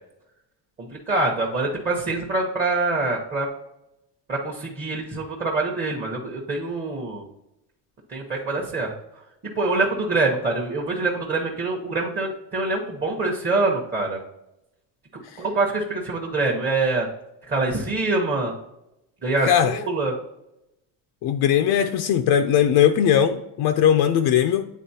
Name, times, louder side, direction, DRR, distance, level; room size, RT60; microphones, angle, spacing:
voice 1, 0.8-3.5 4.3-7.3 8.1-8.9 9.5-14.2 15.4-17.1 17.5-18.5 19.2-20.1, right 3 dB, 20° right, -1 dB, 0.9 m, -25 dB
voice 2, 19.4-19.8 21.2-24.7, left 9 dB, 60° left, 7 dB, 0.5 m, -19 dB
9.2 x 4.0 x 2.7 m, 0.89 s
cardioid pair, 145°, 43 cm